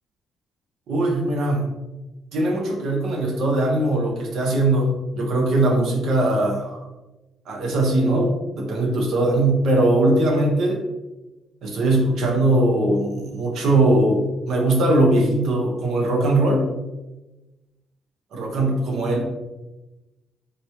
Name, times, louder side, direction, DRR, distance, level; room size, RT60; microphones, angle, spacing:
voice 1, 0.9-1.8 2.3-6.8 7.5-10.8 11.6-16.7 18.3-19.2, right 1 dB, 75° right, 0 dB, 0.8 m, -20 dB
4.1 x 2.2 x 3.0 m, 1.1 s
cardioid pair, 90°, 0 cm